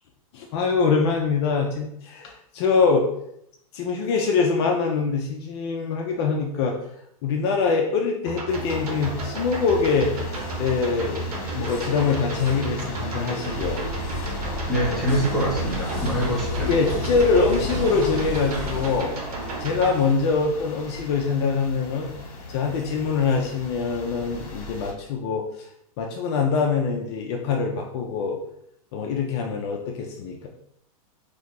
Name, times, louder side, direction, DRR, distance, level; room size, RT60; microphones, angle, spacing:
voice 1, 0.3-3.1 3.7-6.8 7.2-10.1 10.6-13.8 16.7-19.2 19.6-22.1 22.5-25.7 26.0-28.4 28.9-30.5, left 5 dB, 45° left, 1 dB, 0.5 m, -24 dB
sound 1, 8.2-19.9, right 2 dB, 90° right, 0.9 m, -33 dB
sound 2, 8.5-24.9, left 3 dB, 65° left, 1.2 m, -37 dB
sound 3, 13.5-19.0, left 1 dB, 55° right, 1.4 m, -33 dB
voice 2, 14.7-16.7, equal, ahead, -6 dB, 0.8 m, -25 dB
2.7 x 2.4 x 3.7 m, 0.74 s
hypercardioid pair, 145°, 19 cm